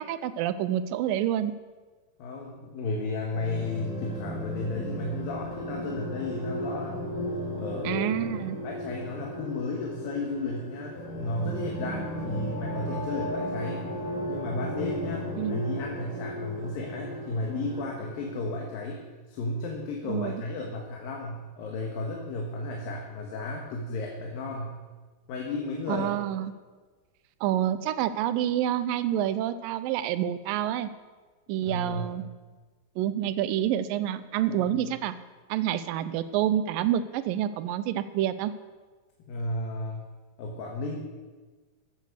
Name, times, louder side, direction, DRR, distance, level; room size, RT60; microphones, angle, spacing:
voice 1, 0.0-1.5 7.8-8.6 15.4-15.6 20.1-20.4 25.9-26.5 27.4-30.9 31.5-32.2 33.0-35.2 35.5-38.5, right 11 dB, 80° right, 13 dB, 2.2 m, -28 dB
voice 2, 2.2-7.0 7.6-8.2 8.6-13.8 14.3-19.0 19.3-24.8 25.3-26.1 31.6-32.0 34.5-34.8 39.3-40.0 40.4-41.0, left 2 dB, 75° left, -1 dB, 3.2 m, -33 dB
sound 1, 3.3-18.6, equal, 35° left, 5.6 m, -35 dB
15.0 x 8.3 x 6.6 m, 1.3 s
omnidirectional pair, 4.2 m